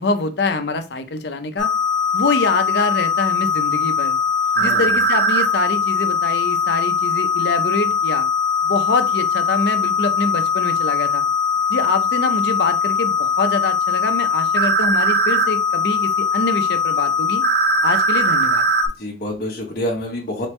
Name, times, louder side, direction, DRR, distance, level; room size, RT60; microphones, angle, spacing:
voice 1, 0.0-1.7 2.1-4.2 4.6-8.3 8.6-11.2 11.7-17.4 17.8-18.7, left 3 dB, 70° left, 8 dB, 0.6 m, -24 dB
sound 1, 1.6-18.9, left 3 dB, 90° right, 1.6 m, -20 dB
voice 2, 4.6-5.0 19.0-20.5, left 1 dB, 55° left, -4 dB, 0.9 m, -27 dB
4.2 x 3.2 x 3.2 m, 0.31 s
head